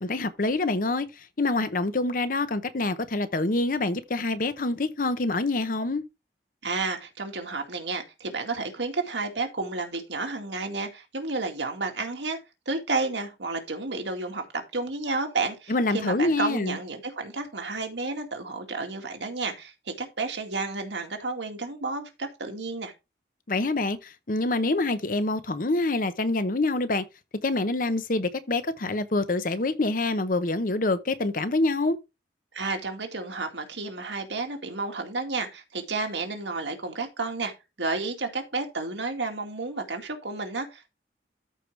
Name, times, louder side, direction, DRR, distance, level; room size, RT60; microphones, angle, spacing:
voice 1, 0.0-6.0 15.7-16.8 23.5-27.0 27.4-32.0, left 2 dB, 50° left, 0.8 m, -26 dB
voice 2, 6.6-12.4 12.7-22.9 32.5-37.5 37.8-40.9, right 3 dB, 90° right, 2.1 m, -31 dB
13.5 x 4.7 x 3.3 m
head